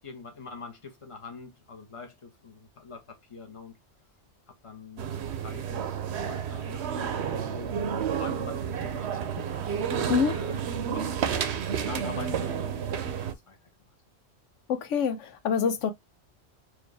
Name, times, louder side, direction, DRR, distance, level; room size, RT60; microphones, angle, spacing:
voice 1, 0.0-3.8 4.5-7.8 8.1-13.6, left 4 dB, 30° left, 1.1 m, -44 dB
sound 1, 5.0-13.3, right 7 dB, 70° right, 0.9 m, -31 dB
voice 2, 14.7-15.9, left 6 dB, 85° left, 1.0 m, -26 dB
4.6 x 2.6 x 3.3 m
omnidirectional pair, 1.2 m